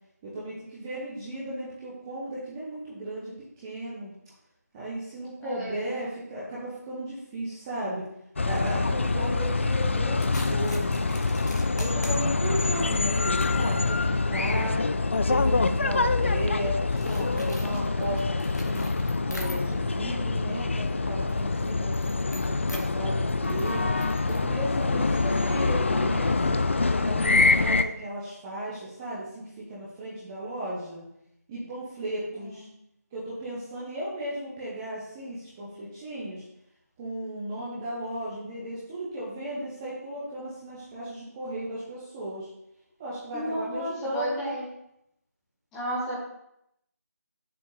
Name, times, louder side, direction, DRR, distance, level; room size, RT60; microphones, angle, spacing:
voice 1, 0.2-4.1 4.7-8.0 8.4-11.0 11.7-14.8 15.3-18.8 19.3-26.6 27.0-31.0 31.5-32.7 33.1-36.4 37.0-42.5 43.0-44.6, right 1 dB, 10° right, -8 dB, 0.9 m, -35 dB
voice 2, 5.4-6.0 32.4-32.7 43.3-44.6 45.7-46.2, equal, 5° left, -7 dB, 1.2 m, -35 dB
sound 1, 8.4-27.8, left 3 dB, 45° left, 0.4 m, -25 dB
sound 2, 10.1-20.0 20.3-25.7, left 1 dB, 85° left, 1.9 m, -47 dB
7.9 x 6.8 x 3.3 m, 0.79 s
figure-of-eight pair, 170°, 9 cm